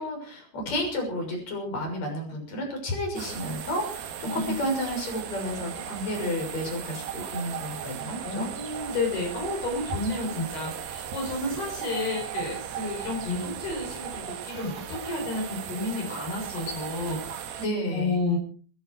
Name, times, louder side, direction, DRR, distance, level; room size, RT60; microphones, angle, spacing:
voice 1, 0.0-8.5 17.6-18.2, equal, 40° left, 2 dB, 7.6 m, -31 dB
sound 1, 3.2-17.7, right 9 dB, 70° right, 3.6 m, -37 dB
voice 2, 8.2-17.6 17.9-18.4, left 2 dB, 65° left, 0 dB, 6.9 m, -31 dB
26.5 x 10.5 x 4.8 m, 0.42 s
omnidirectional pair, 5.0 m